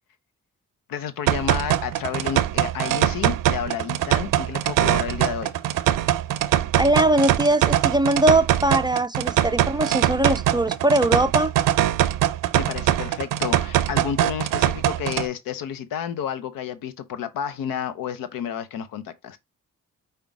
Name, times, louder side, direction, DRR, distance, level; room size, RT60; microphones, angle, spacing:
voice 1, 0.9-5.5 12.5-19.4, left 8 dB, 85° left, 0.7 m, -31 dB
sound 1, 1.3-15.3, right 12 dB, 75° right, 0.5 m, -22 dB
voice 2, 6.8-11.5, right 1 dB, 15° right, 0.3 m, -21 dB
5.1 x 2.2 x 4.6 m
supercardioid pair, 55°, 33 cm